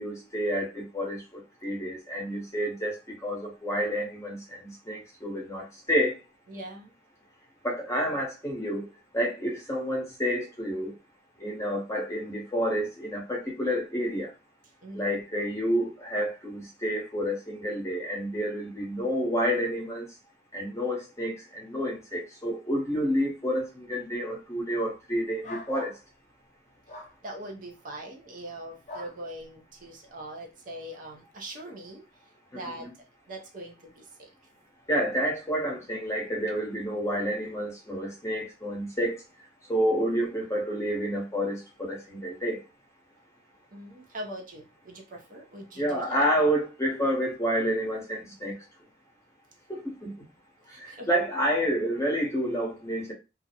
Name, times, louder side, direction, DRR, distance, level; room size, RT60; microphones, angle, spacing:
voice 1, 0.0-6.2 7.6-8.9 9.1-10.9 11.4-14.3 14.9-20.1 20.5-26.0 32.5-32.9 34.9-39.2 39.7-42.6 45.8-48.6 49.7-50.1 50.8-53.1, equal, 15° left, 0.8 m, -29 dB
voice 2, 6.5-6.9 14.8-15.2 27.2-32.0 32.5-32.9 33.3-34.3 43.7-46.2 50.7-51.1, right 1 dB, 50° right, 0.6 m, -42 dB
sound 1, 25.4-26.0 26.9-27.1 28.9-29.2, left 2 dB, 40° left, 0.5 m, -41 dB
2.4 x 2.0 x 2.8 m
head